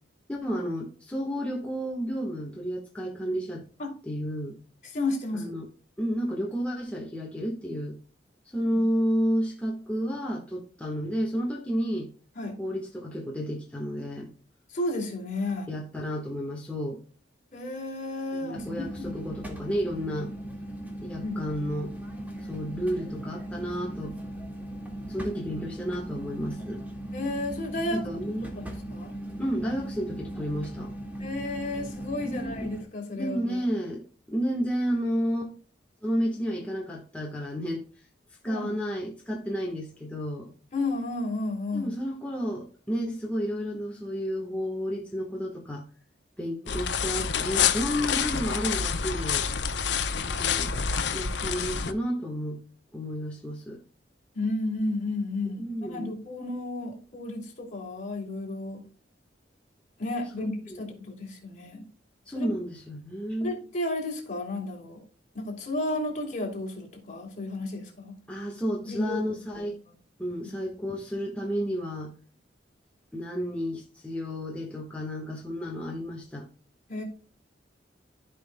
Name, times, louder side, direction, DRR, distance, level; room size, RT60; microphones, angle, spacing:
voice 1, 0.3-3.6 4.1-4.6 5.3-5.6 6.0-8.0 8.5-12.1 12.6-14.3 15.7-17.0 18.3-20.3 21.0-21.9 22.4-24.2 25.1-26.8 27.9-28.6 29.4-30.9 32.2-32.7 33.1-35.5 36.0-37.8 38.4-40.5 41.7-45.9 46.4-49.5 50.2-50.7 51.1-52.6 52.9-53.8 55.6-56.1 60.4-60.8 62.3-63.5 68.3-69.8 70.2-72.1 73.1-76.5, equal, 5° left, 1.3 m, -31 dB
voice 2, 4.8-5.6 12.3-12.6 14.7-15.7 17.5-19.1 21.2-21.4 27.1-28.3 28.6-29.1 31.2-33.6 38.4-38.7 40.7-41.9 54.3-58.8 60.0-61.8 62.3-62.5 63.4-65.0 65.3-68.2 68.8-69.2 69.6-69.7 76.9-77.0, left 2 dB, 45° left, 3.0 m, -32 dB
sound 1, 18.5-32.8, right 1 dB, 10° right, 1.8 m, -38 dB
sound 2, 46.7-51.9, left 7 dB, 70° left, 0.7 m, -27 dB
14.5 x 5.5 x 2.2 m
head